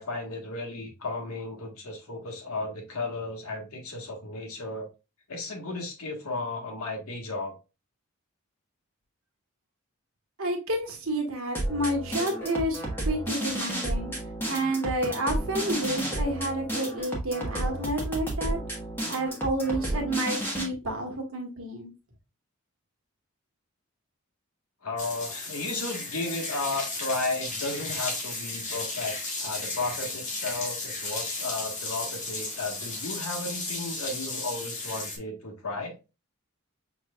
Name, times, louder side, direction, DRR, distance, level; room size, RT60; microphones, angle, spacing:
voice 1, 0.0-4.9 5.3-7.5 24.8-29.1 29.4-35.9, left 2 dB, 80° left, 1.4 m, -34 dB
voice 2, 10.4-14.1 14.5-18.6 19.1-21.9, right 1 dB, 70° right, 1.3 m, -30 dB
sound 1, 11.5-20.6, right 1 dB, 10° left, 1.1 m, -32 dB
sound 2, 25.0-35.2, left 2 dB, 35° left, 1.1 m, -34 dB
5.9 x 3.1 x 2.2 m
head